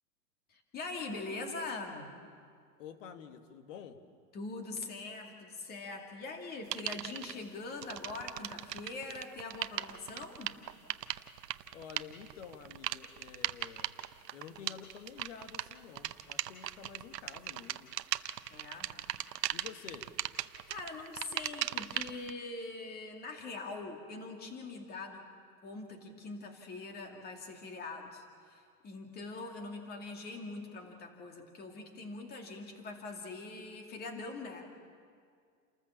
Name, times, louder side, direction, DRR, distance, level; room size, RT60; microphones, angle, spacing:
voice 1, 0.5-2.1 4.3-10.5 18.5-19.0 20.7-25.3 25.6-34.7, left 3 dB, 20° left, 3 dB, 2.5 m, -43 dB
voice 2, 2.8-4.0 11.7-14.0 14.3-18.0 19.5-20.1, left 8 dB, 50° left, 8 dB, 1.8 m, -49 dB
sound 1, 6.7-7.3 7.8-22.3, right 12 dB, 85° right, 0.9 m, -38 dB
29.0 x 14.0 x 7.3 m, 2.1 s
hypercardioid pair, 145°, 47 cm